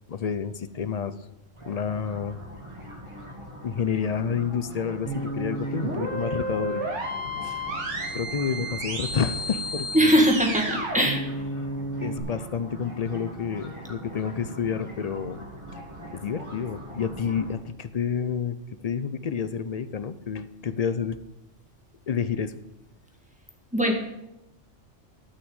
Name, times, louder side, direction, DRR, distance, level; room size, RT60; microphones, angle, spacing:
voice 1, 0.1-1.2 1.6-2.4 3.6-6.8 7.4-7.6 8.1-10.3 10.7-10.8 12.0-15.4 16.1-18.6 18.8-21.2 22.1-22.5, left 6 dB, 50° left, 13 dB, 0.5 m, -29 dB
sound 1, 1.5-17.6, equal, 25° right, 2.5 m, -42 dB
sound 2, 5.0-12.2, right 1 dB, 70° right, 2.6 m, -32 dB
voice 2, 9.9-11.2 23.7-23.9, equal, 5° right, 2 dB, 1.9 m, -21 dB
12.5 x 6.1 x 8.0 m, 0.90 s
omnidirectional pair, 1.3 m